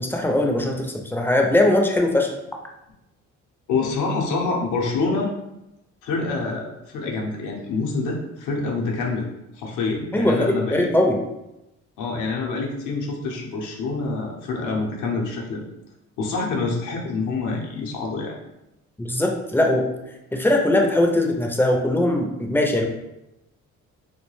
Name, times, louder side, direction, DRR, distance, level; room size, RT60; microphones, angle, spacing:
voice 1, 0.0-2.3 10.1-11.2 19.0-19.8 20.3-22.9, left 1 dB, 5° left, 1 dB, 0.3 m, -20 dB
voice 2, 3.7-5.3 6.0-9.3 9.5-10.9 12.0-15.6 16.2-18.3, left 3 dB, 80° left, -1 dB, 0.6 m, -26 dB
2.3 x 2.1 x 3.0 m, 0.91 s
cardioid pair, 90°, 30 cm